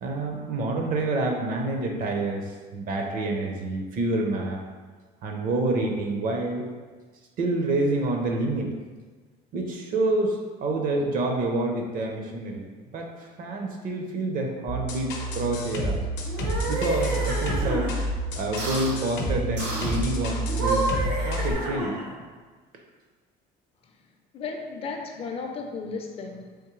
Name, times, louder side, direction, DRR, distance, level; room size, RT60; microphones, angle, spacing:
voice 1, 0.0-4.6 5.2-6.6 7.4-8.7 9.5-16.0 16.7-17.9 18.4-21.9, right 2 dB, 50° right, 2 dB, 0.5 m, -28 dB
sound 1, 14.7-21.5, right 1 dB, 85° left, 0.6 m, -29 dB
sound 2, 16.2-17.9 18.6-19.0 19.6-20.0 20.5-22.2, right 2 dB, 85° right, 1.0 m, -30 dB
voice 2, 24.3-26.6, left 4 dB, 35° left, 3 dB, 0.4 m, -35 dB
3.5 x 3.0 x 3.0 m, 1.4 s
cardioid pair, 155°, 18 cm